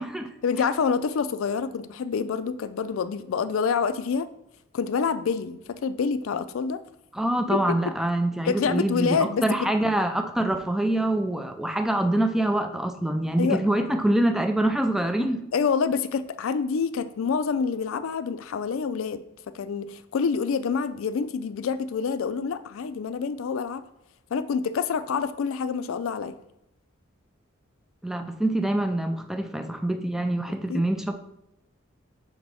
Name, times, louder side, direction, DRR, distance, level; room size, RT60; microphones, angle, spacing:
voice 1, 0.4-4.3 4.7-6.8 8.4-9.7 13.4-13.6 15.5-19.2 19.5-23.8 24.3-26.4 30.7-30.8, left 5 dB, 75° left, 13 dB, 0.4 m, -27 dB
voice 2, 7.1-15.4 28.0-31.1, right 1 dB, ahead, 7 dB, 0.3 m, -25 dB
5.1 x 4.0 x 4.7 m, 0.86 s
head